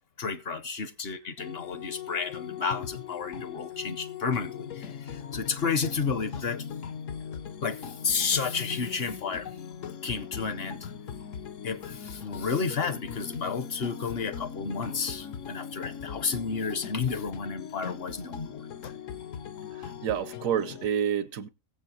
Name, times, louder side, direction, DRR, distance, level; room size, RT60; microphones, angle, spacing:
voice 1, 0.2-6.7 7.6-9.5 10.0-10.9 11.6-18.9, left 5 dB, 55° left, 0.9 m, -31 dB
sound 1, 1.4-20.9, left 8 dB, 80° left, 1.1 m, -40 dB
voice 2, 19.8-21.5, right 9 dB, 85° right, 1.2 m, -29 dB
22.0 x 7.5 x 2.8 m
omnidirectional pair, 1.4 m